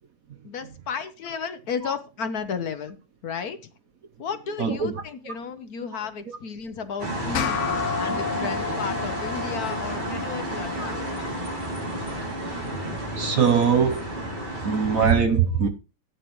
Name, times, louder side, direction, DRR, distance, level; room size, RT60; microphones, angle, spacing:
voice 1, 0.4-3.0 3.2-3.6 4.2-7.6 8.0-11.1, left 6 dB, 60° left, 1.3 m, -33 dB
voice 2, 4.6-5.0 10.8-10.9 13.2-14.1 14.6-15.7, right 6 dB, 55° right, 1.2 m, -21 dB
sound 1, 7.0-15.1, right 1 dB, 25° right, 3.0 m, -31 dB
sound 2, 7.3-12.1, left 8 dB, 80° left, 0.6 m, -32 dB
13.5 x 9.3 x 3.1 m
omnidirectional pair, 2.1 m